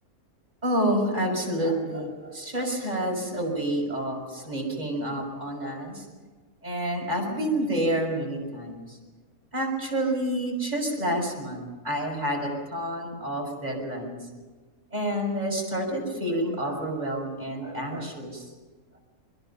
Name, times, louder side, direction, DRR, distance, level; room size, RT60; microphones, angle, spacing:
voice 1, 0.6-6.0 6.6-9.0 9.5-14.2 14.9-18.5, right 1 dB, 30° right, -1 dB, 6.1 m, -29 dB
29.5 x 22.0 x 5.7 m, 1.3 s
omnidirectional pair, 1.5 m